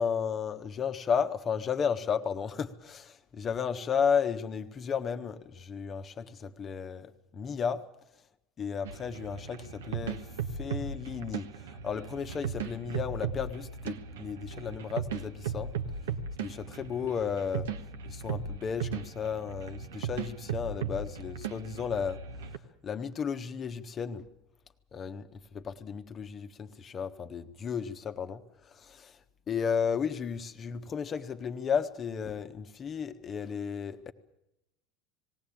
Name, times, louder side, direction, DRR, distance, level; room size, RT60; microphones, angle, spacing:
voice 1, 0.0-7.9 8.6-15.7 16.4-17.7 18.0-22.2 22.8-24.3 24.9-29.2 29.5-34.1, left 6 dB, 35° left, 8 dB, 1.4 m, -33 dB
sound 1, 8.8-22.6, right 6 dB, 80° right, 1.3 m, -37 dB
19.5 x 17.5 x 8.7 m, 0.85 s
hypercardioid pair, 85°, 0 cm